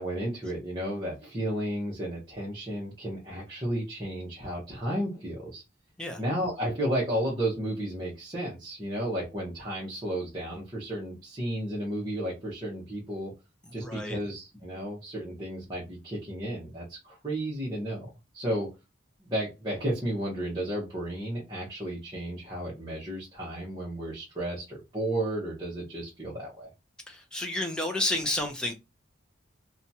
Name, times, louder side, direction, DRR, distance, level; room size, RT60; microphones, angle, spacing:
voice 1, 0.0-5.6 6.2-13.3 13.7-18.7 19.2-26.7, right 1 dB, 20° right, 0.8 m, -33 dB
voice 2, 13.7-14.2 27.1-28.7, left 1 dB, 5° left, 0.5 m, -31 dB
2.7 x 2.2 x 2.7 m
head